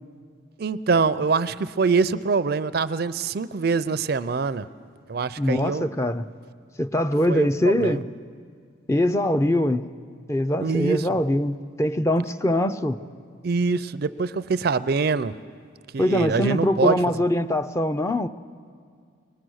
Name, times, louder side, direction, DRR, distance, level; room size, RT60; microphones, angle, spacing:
voice 1, 0.6-4.7 5.1-5.9 7.3-8.0 10.6-11.0 13.4-15.3 15.9-17.0, right 4 dB, 50° right, 15 dB, 0.4 m, -24 dB
voice 2, 5.4-6.2 6.8-8.0 8.9-9.9 10.3-13.0 16.0-18.3, left 1 dB, 15° left, 10 dB, 0.4 m, -23 dB
24.0 x 20.0 x 6.3 m, 2.1 s
head